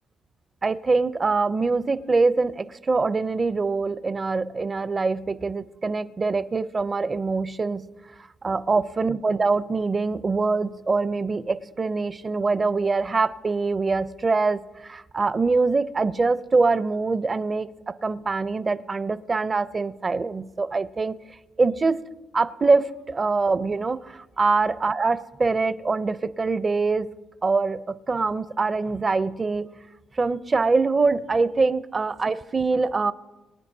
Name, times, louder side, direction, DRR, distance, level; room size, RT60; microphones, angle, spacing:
voice 1, 0.6-7.9 8.4-21.1 21.6-22.0 22.3-27.1 27.4-29.7 30.2-33.1, right 4 dB, 30° right, 0.5 m, -24 dB
23.5 x 9.4 x 2.7 m
cardioid pair, 90°, 0 cm